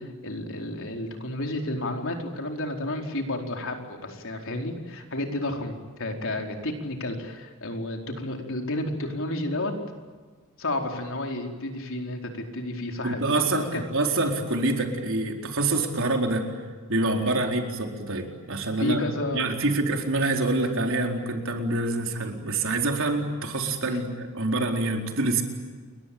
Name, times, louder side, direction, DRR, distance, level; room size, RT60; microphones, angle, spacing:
voice 1, 0.0-9.7 10.6-13.8 17.4-17.5 18.8-19.5 23.8-24.0, left 1 dB, 60° left, 3 dB, 4.7 m, -31 dB
voice 2, 13.0-16.5 16.9-19.0 19.3-25.4, right 2 dB, 60° right, 3 dB, 4.5 m, -26 dB
29.5 x 23.0 x 8.8 m, 1.5 s
head